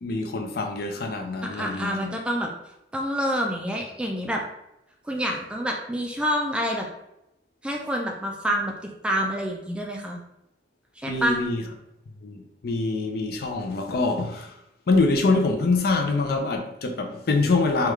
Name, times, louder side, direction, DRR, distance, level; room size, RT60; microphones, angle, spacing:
voice 1, 0.0-2.2 11.1-11.6 12.2-14.6 14.9-17.9, left 3 dB, 60° left, 0.4 m, -25 dB
voice 2, 1.4-2.5 2.9-4.4 5.1-6.9 7.6-10.2 11.0-11.4, equal, 5° right, 0.3 m, -27 dB
3.5 x 2.3 x 3.1 m
head